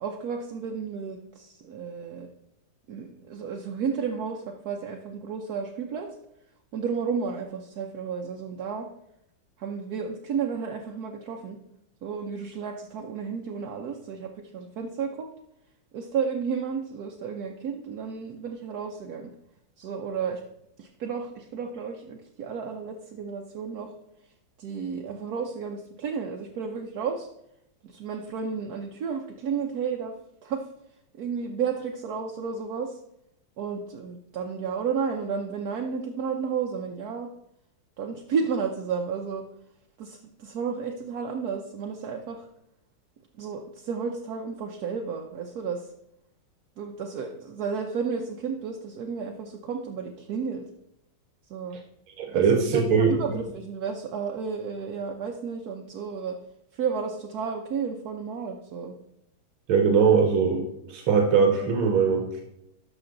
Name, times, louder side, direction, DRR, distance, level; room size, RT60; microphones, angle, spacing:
voice 1, 0.0-2.3 2.9-6.1 6.7-8.9 9.6-11.6 12.0-15.3 15.9-19.3 19.8-20.4 20.8-23.9 24.6-27.3 27.8-30.1 30.4-30.6 31.2-33.0 33.6-37.3 38.0-39.4 40.0-42.5 43.3-45.9 46.8-50.6 51.5-51.8 52.3-56.4 56.7-59.0, right 6 dB, 65° right, 1 dB, 1.0 m, -32 dB
voice 2, 52.2-53.2 59.7-62.4, right 6 dB, 90° right, 3 dB, 2.0 m, -21 dB
12.5 x 6.1 x 3.9 m, 0.79 s
omnidirectional pair, 2.2 m